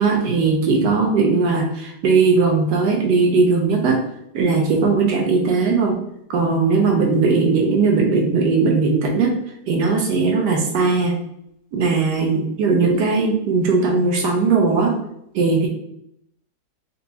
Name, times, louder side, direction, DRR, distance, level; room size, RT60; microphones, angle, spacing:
voice 1, 0.0-4.0 4.3-6.0 6.3-9.3 9.7-11.2 11.7-14.9 15.3-15.7, right 4 dB, 80° right, 1 dB, 1.2 m, -18 dB
4.0 x 2.3 x 2.7 m, 0.74 s
omnidirectional pair, 1.8 m